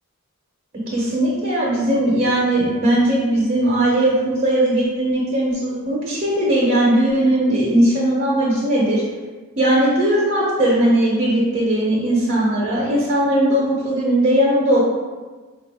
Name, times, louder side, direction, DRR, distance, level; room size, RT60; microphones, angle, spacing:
voice 1, 0.9-9.0 9.6-14.8, right 1 dB, 40° right, -5 dB, 0.7 m, -18 dB
4.1 x 2.3 x 3.5 m, 1.3 s
head